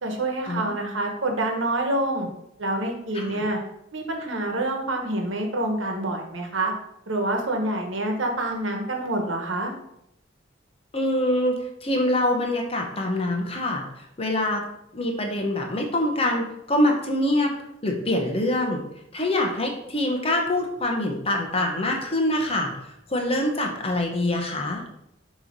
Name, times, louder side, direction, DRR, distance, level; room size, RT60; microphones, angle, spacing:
voice 1, 0.0-2.3 2.6-3.6 3.9-6.7 7.1-9.7, right 2 dB, 80° right, 3 dB, 1.2 m, -27 dB
voice 2, 3.1-3.4 10.9-14.7 14.9-18.8 19.1-24.9, left 1 dB, 30° left, 2 dB, 0.9 m, -25 dB
6.8 x 3.1 x 5.2 m, 0.80 s
head